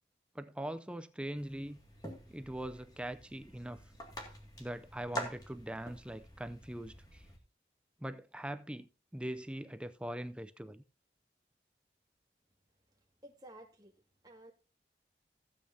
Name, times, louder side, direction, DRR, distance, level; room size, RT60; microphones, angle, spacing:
voice 1, 0.3-1.8 2.3-3.8 4.6-7.3 8.0-10.8, right 1 dB, 5° right, 0.4 m, -42 dB
sound 1, 1.3-7.4, equal, 20° left, 2.1 m, -47 dB
voice 2, 13.2-13.9 14.2-14.5, right 1 dB, 20° right, 2.0 m, -53 dB
15.5 x 8.4 x 2.7 m
head